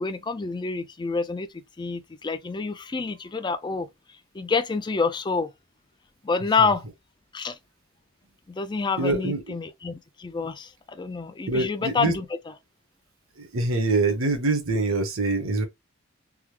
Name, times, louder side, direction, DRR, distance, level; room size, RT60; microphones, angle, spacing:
voice 1, 0.0-1.5 1.8-3.9 4.3-5.5 6.2-6.8 7.3-7.6 8.5-12.5, left 4 dB, 20° left, 0.4 m, -27 dB
voice 2, 9.0-9.4 11.5-12.1 13.4-15.7, right 2 dB, 75° right, 1.0 m, -24 dB
3.5 x 2.1 x 3.0 m
head